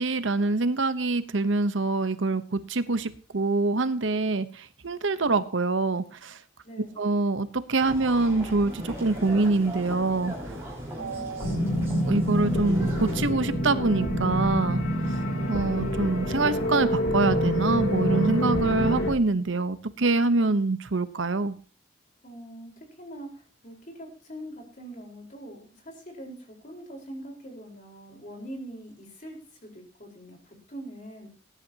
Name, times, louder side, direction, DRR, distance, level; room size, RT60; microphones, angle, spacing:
voice 1, 0.0-6.4 7.0-10.4 11.0-11.5 12.0-14.8 15.5-21.6, right 3 dB, 75° right, 12 dB, 0.9 m, -25 dB
voice 2, 6.6-7.0 10.9-11.7 22.2-22.7 23.0-31.3, right 1 dB, 40° left, 1 dB, 4.4 m, -43 dB
sound 1, 7.8-13.2, equal, 15° right, 5.9 m, -38 dB
sound 2, 11.4-19.1, equal, 85° left, 3.2 m, -26 dB
20.0 x 11.0 x 2.9 m, 0.37 s
head